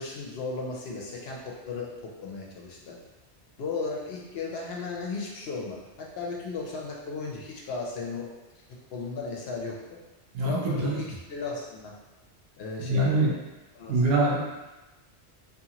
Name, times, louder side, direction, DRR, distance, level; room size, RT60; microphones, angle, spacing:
voice 1, 0.0-3.0 3.6-8.3 8.9-9.8 10.4-11.9 12.6-13.1 13.7-14.2, left 4 dB, 65° left, -2 dB, 0.8 m, -35 dB
voice 2, 10.3-11.0 12.8-13.3 13.9-14.4, right 2 dB, 65° right, -3 dB, 0.8 m, -24 dB
2.7 x 2.4 x 2.8 m, 1.1 s
omnidirectional pair, 1.2 m